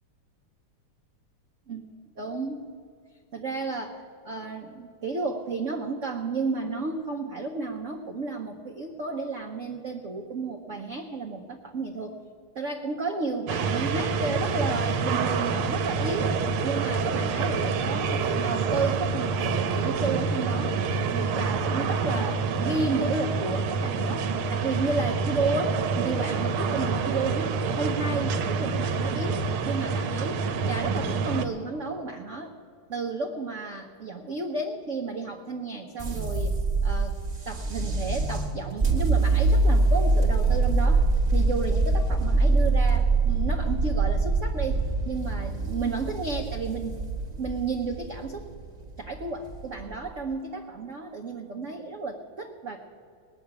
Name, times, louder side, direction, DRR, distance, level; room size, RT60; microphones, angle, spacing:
voice 1, 2.2-2.7 3.3-12.2 12.5-16.4 16.6-20.8 21.1-32.5 32.9-36.6 36.8-41.0 41.3-47.0 47.3-48.5 49.0-52.8, right 3 dB, 55° right, 2 dB, 0.9 m, -32 dB
sound 1, 13.5-31.5, right 5 dB, 80° right, 1.7 m, -27 dB
sound 2, 36.0-50.2, right 3 dB, 25° right, 1.2 m, -24 dB
19.0 x 7.0 x 9.5 m, 2.3 s
omnidirectional pair, 2.3 m